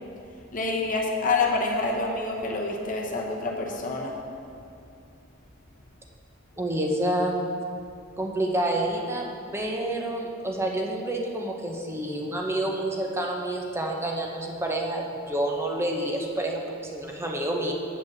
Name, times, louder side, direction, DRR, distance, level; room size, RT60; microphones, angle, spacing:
voice 1, 0.5-4.2, left 3 dB, 40° left, 0 dB, 0.9 m, -27 dB
voice 2, 6.6-7.4 8.2-17.7, right 1 dB, 10° right, 0 dB, 0.9 m, -28 dB
7.6 x 5.2 x 7.4 m, 2.5 s
head